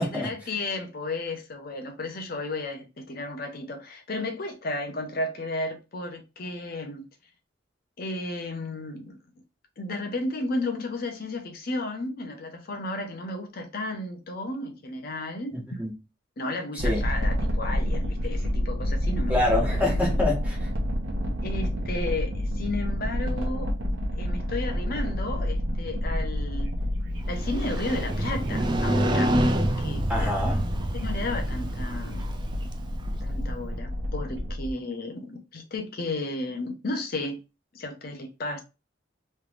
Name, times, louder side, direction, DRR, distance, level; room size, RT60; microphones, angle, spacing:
voice 1, 0.0-7.1 8.0-9.2 9.8-15.6 16.4-19.4 21.4-23.7 24.2-26.7 27.3-29.4 29.8-30.3 30.9-32.3 33.2-37.4 37.7-38.6, left 2 dB, 50° left, 0.7 m, -33 dB
voice 2, 15.5-15.9 16.7-17.0 19.3-20.7 30.1-30.6, left 1 dB, 10° right, 1.4 m, -26 dB
sound 1, 16.8-34.7, equal, 85° right, 0.9 m, -29 dB
Motorcycle, 27.3-33.2, right 1 dB, 25° right, 0.3 m, -28 dB
3.2 x 3.1 x 2.4 m
head